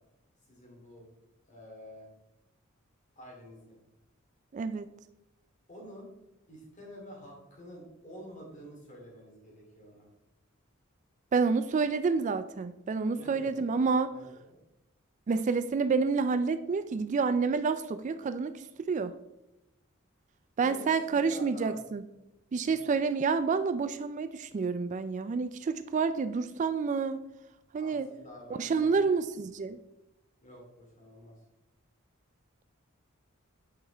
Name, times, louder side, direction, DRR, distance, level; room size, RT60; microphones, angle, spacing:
voice 1, 0.5-1.1 1.4-2.1 3.2-3.8 5.7-6.1 6.5-10.1 13.1-13.7 14.1-14.6 20.6-21.8 22.6-22.9 27.7-29.0 30.4-31.4, equal, 35° left, -2 dB, 2.7 m, -49 dB
voice 2, 4.5-4.9 11.3-14.1 15.3-19.1 20.6-22.0 22.5-27.2 27.7-28.1 28.6-29.8, right 4 dB, 35° right, 12 dB, 0.3 m, -29 dB
8.5 x 5.5 x 3.4 m, 0.93 s
head